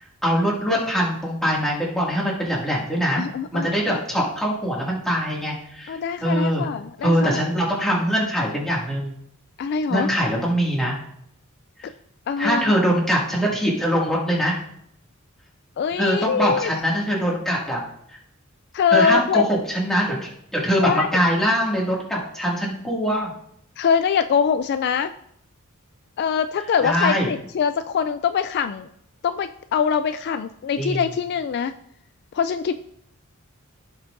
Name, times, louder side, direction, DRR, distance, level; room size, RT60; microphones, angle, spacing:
voice 1, 0.2-3.2 3.5-6.6 7.0-9.1 9.9-10.9 11.8-11.9 12.4-14.6 16.0-17.8 18.1-18.2 18.9-23.3 26.8-27.3 30.8-31.0, equal, ahead, -5 dB, 2.2 m, -23 dB
voice 2, 3.2-4.0 5.9-7.4 9.6-10.1 12.3-12.7 15.8-16.7 18.7-19.4 20.8-21.1 23.8-25.1 26.2-28.9 29.2-31.7 32.3-32.7, left 7 dB, 50° left, 11 dB, 0.3 m, -23 dB
15.0 x 6.1 x 2.6 m, 0.72 s
head